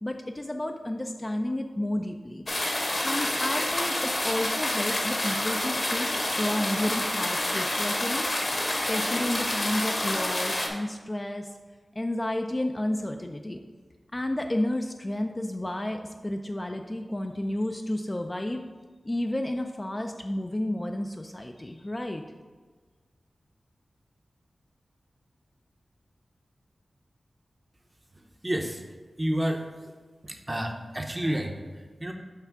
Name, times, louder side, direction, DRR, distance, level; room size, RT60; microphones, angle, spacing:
voice 1, 0.0-2.4 3.0-8.3 8.9-11.5 12.0-13.6 14.1-18.6 19.1-22.2, left 1 dB, 20° left, 4 dB, 0.3 m, -31 dB
sound 1, 2.5-10.7, left 1 dB, 35° left, 0.9 m, -28 dB
voice 2, 28.1-28.8 29.2-29.9 30.2-32.1, right 1 dB, 20° right, 4 dB, 0.6 m, -31 dB
5.7 x 3.4 x 5.8 m, 1.4 s
wide cardioid pair, 105°, 0 cm